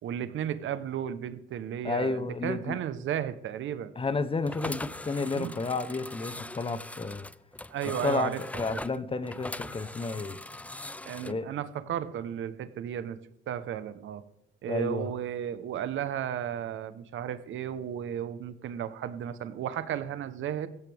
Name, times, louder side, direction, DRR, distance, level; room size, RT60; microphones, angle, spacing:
voice 1, 0.0-3.9 5.4-5.5 7.7-8.8 11.0-13.2 13.5-14.2 14.6-20.7, right 10 dB, 75° right, 1.2 m, -34 dB
voice 2, 1.8-2.8 4.0-7.3 7.8-10.4 11.2-11.5 14.7-15.1, left 3 dB, 25° left, 1.1 m, -31 dB
sound 1, 4.4-11.3, left 2 dB, 5° left, 0.4 m, -41 dB
16.5 x 14.0 x 3.6 m
cardioid pair, 90°, 20 cm